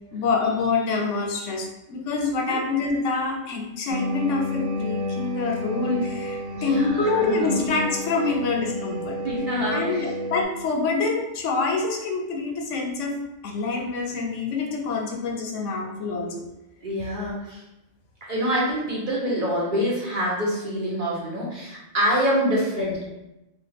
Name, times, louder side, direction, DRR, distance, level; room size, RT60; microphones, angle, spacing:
voice 1, 0.1-9.2 9.7-13.2 13.4-16.4, left 3 dB, 75° left, 1 dB, 0.9 m, -26 dB
sound 1, 3.9-10.4, left 1 dB, 65° right, 0.4 m, -31 dB
voice 2, 6.5-7.6 9.2-10.0 16.8-17.6 18.3-23.0, equal, 45° right, -6 dB, 0.8 m, -26 dB
3.0 x 2.3 x 3.3 m, 0.91 s
omnidirectional pair, 1.3 m